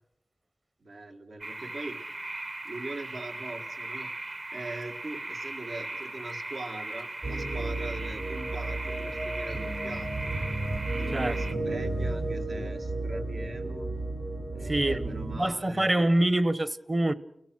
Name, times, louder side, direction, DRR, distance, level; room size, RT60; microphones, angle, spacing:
voice 1, 0.8-2.0 2.6-4.1 4.5-10.1 10.9-13.9 14.5-16.1, right 2 dB, 85° right, 1.8 m, -41 dB
sound 1, 1.4-11.5, right 2 dB, 50° right, 1.2 m, -38 dB
sound 2, 7.2-15.4, right 2 dB, 65° right, 5.6 m, -33 dB
voice 2, 11.1-11.6 14.7-17.1, right 1 dB, 30° right, 0.9 m, -26 dB
29.0 x 17.5 x 6.1 m
wide cardioid pair, 85°, 0 cm